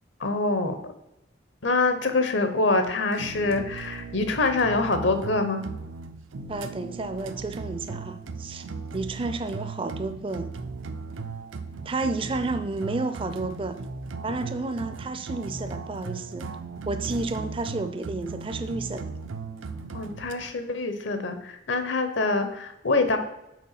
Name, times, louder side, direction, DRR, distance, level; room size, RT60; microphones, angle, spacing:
voice 1, 0.2-0.9 1.6-5.7 19.9-23.2, left 3 dB, 70° left, 8 dB, 1.0 m, -25 dB
sound 1, 3.1-20.3, right 4 dB, 85° right, 0.6 m, -37 dB
voice 2, 6.5-8.7 8.9-10.5 11.9-13.8 14.2-16.5 16.8-19.0, right 3 dB, 25° right, 9 dB, 0.4 m, -31 dB
6.1 x 4.6 x 5.7 m, 0.87 s
head